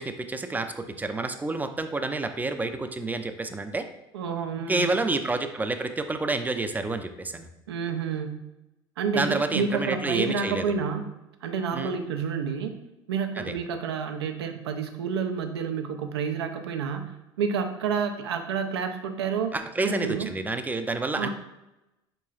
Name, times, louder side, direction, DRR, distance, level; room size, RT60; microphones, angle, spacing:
voice 1, 0.0-3.8 4.7-7.5 9.1-10.6 11.7-11.9 13.4-13.5 19.5-21.3, right 3 dB, 15° right, 8 dB, 0.3 m, -29 dB
voice 2, 4.1-4.9 7.7-8.4 9.0-11.1 11.4-12.7 13.1-19.6 19.8-20.3 21.2-21.3, right 6 dB, 85° right, 6 dB, 0.4 m, -29 dB
4.5 x 3.0 x 2.3 m, 0.93 s
hypercardioid pair, 70°, 13 cm